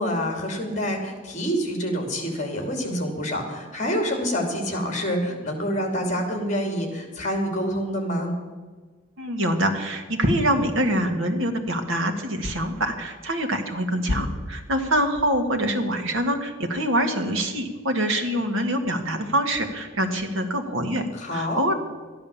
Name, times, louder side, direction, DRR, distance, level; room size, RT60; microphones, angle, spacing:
voice 1, 0.0-8.3 21.1-21.6, equal, 35° left, 3 dB, 2.9 m, -27 dB
voice 2, 9.2-21.1 21.3-21.7, right 1 dB, 85° right, 5 dB, 1.8 m, -25 dB
13.0 x 10.5 x 7.2 m, 1.4 s
head